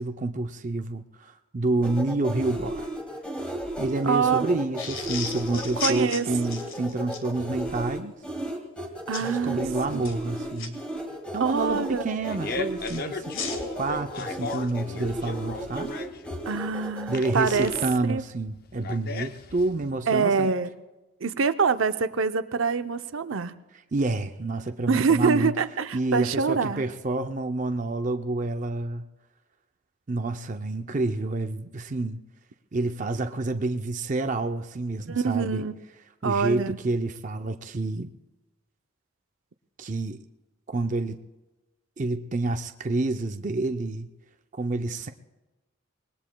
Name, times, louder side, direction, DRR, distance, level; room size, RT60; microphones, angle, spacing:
voice 1, 0.0-2.9 3.8-8.1 9.2-10.8 11.3-13.3 13.8-16.0 17.1-20.5 23.9-25.5 25.9-29.0 30.1-32.2 32.7-35.6 36.2-38.1 39.8-40.2 40.7-41.2 42.0-44.1 44.5-45.1, right 2 dB, 40° right, 7 dB, 0.5 m, -28 dB
sound 1, 1.8-17.9, equal, 5° left, 1.9 m, -35 dB
voice 2, 4.0-4.5 5.5-6.3 9.1-9.6 9.9-10.2 11.4-12.0 16.5-17.7 18.1-18.2 20.1-20.7 21.2-23.5 24.9-26.8 35.1-35.8 36.2-36.8, right 5 dB, 80° right, 9 dB, 0.6 m, -25 dB
sound 2, 4.8-7.3 9.1-9.3 9.9-10.7 12.8-14.7, left 6 dB, 80° left, 1.7 m, -35 dB
Fart, 11.9-19.9, left 3 dB, 45° left, 0.5 m, -36 dB
25.0 x 20.0 x 2.3 m, 1.1 s
head